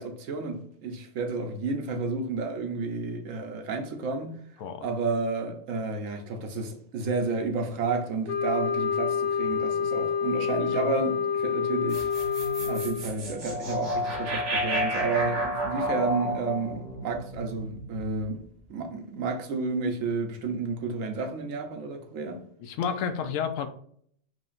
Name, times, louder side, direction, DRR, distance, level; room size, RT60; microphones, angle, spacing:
voice 1, 0.0-4.4 4.8-12.1 12.7-18.4 18.7-22.4, right 3 dB, 85° right, 1.2 m, -31 dB
sound 1, 8.3-13.2, left 6 dB, 55° left, 0.5 m, -28 dB
voice 2, 10.7-11.0 22.6-23.7, left 7 dB, 85° left, 1.0 m, -31 dB
sound 2, 11.9-18.2, equal, 65° right, 1.3 m, -31 dB
4.7 x 2.7 x 2.5 m
omnidirectional pair, 1.3 m